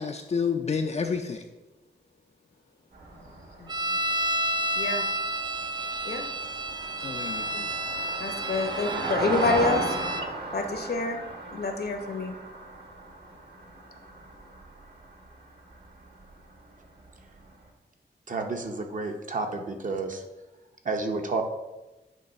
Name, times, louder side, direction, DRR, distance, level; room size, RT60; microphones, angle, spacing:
voice 1, 0.0-1.4 3.2-3.4 7.0-7.7, left 5 dB, 35° left, 4 dB, 0.4 m, -30 dB
sound 1, 2.9-15.9 16.2-16.3 16.6-16.7, right 2 dB, 65° right, 1.6 m, -36 dB
voice 2, 3.6-4.0 4.8-5.0 6.0-6.2 8.2-10.0 10.5-11.2 11.5-12.4, left 3 dB, 60° left, 5 dB, 0.9 m, -28 dB
sound 2, 3.7-10.3, right 1 dB, 25° right, 0.4 m, -31 dB
voice 3, 18.3-20.2 20.8-21.4, right 3 dB, 45° right, 4 dB, 0.8 m, -30 dB
9.2 x 3.2 x 5.3 m, 1.1 s
wide cardioid pair, 180°, 18 cm